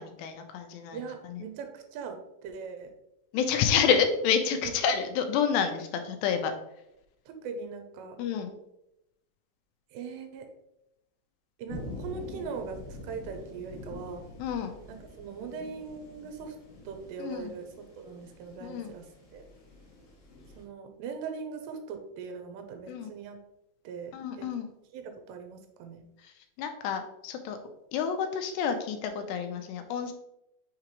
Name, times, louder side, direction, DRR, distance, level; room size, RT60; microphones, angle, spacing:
voice 1, 0.0-1.0 1.3-1.4 3.3-6.5 8.2-8.5 14.4-14.8 17.2-17.5 18.6-18.9 22.9-23.1 24.1-24.7 26.2-27.6 27.9-30.1, left 7 dB, 85° left, 7 dB, 2.7 m, -29 dB
voice 2, 0.9-2.9 4.6-4.7 7.3-8.2 9.9-10.5 11.6-14.2 14.9-16.6 16.9-17.7 18.0-19.0 19.3-19.4 20.6-23.4 23.8-24.5 24.9-26.0, right 5 dB, 85° right, 5 dB, 2.8 m, -40 dB
sound 1, 11.7-20.6, left 2 dB, 70° left, 1.4 m, -46 dB
6.6 x 4.9 x 3.0 m, 0.84 s
omnidirectional pair, 4.9 m